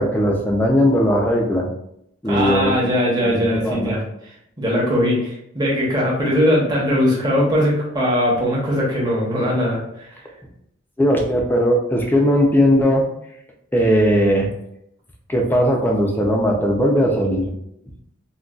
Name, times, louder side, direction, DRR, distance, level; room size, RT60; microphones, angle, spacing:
voice 1, 0.0-1.7 2.2-2.9 3.2-4.0 11.0-13.0 13.7-14.5 15.3-17.5, equal, 10° left, 0 dB, 0.4 m, -18 dB
voice 2, 2.2-4.0 4.6-10.1, equal, 20° right, -5 dB, 0.8 m, -20 dB
3.9 x 2.2 x 2.3 m, 0.76 s
head